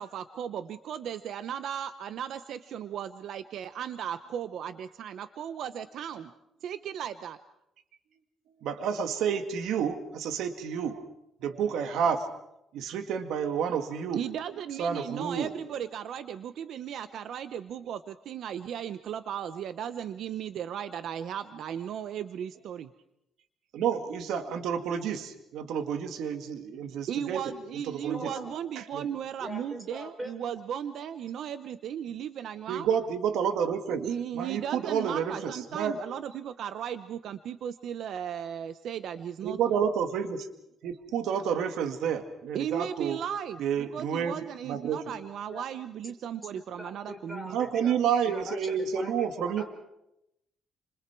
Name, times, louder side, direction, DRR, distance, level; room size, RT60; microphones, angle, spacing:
voice 1, 0.0-6.3 6.6-7.4 14.1-22.9 27.1-32.9 34.0-39.6 42.5-47.6, right 9 dB, 65° right, 11 dB, 0.8 m, -36 dB
voice 2, 8.6-11.0 11.4-12.3 12.7-14.2 14.8-15.5 23.7-27.4 28.0-28.3 28.8-29.1 32.7-34.0 34.3-36.0 39.4-40.5 40.8-43.2 43.6-44.4 44.7-45.0 47.5-49.6, right 7 dB, 90° right, 7 dB, 1.9 m, -29 dB
voice 3, 28.1-28.5 29.4-30.3 45.5-45.6 46.8-48.0 48.2-49.6, equal, 10° right, 2 dB, 5.9 m, -41 dB
29.5 x 27.0 x 4.6 m, 0.84 s
cardioid pair, 150°, 0 cm